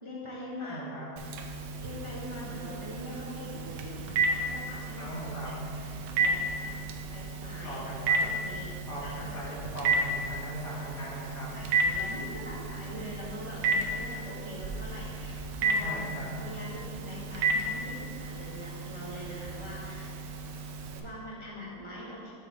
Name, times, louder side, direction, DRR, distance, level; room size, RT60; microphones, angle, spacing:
voice 1, 0.0-0.8 1.8-5.1 5.4-6.8 7.1-7.8 8.1-8.7 9.0-9.4 11.5-16.0 16.4-20.1 21.0-22.3, equal, 20° right, -7 dB, 0.8 m, -43 dB
voice 2, 0.6-1.1 5.0-5.5 7.6-8.2 8.8-11.5 15.8-16.3, equal, 70° left, -6 dB, 2.3 m, -39 dB
Telephone, 1.2-21.0, right 3 dB, 90° right, 1.3 m, -33 dB
6.4 x 6.1 x 4.1 m, 2.5 s
omnidirectional pair, 1.9 m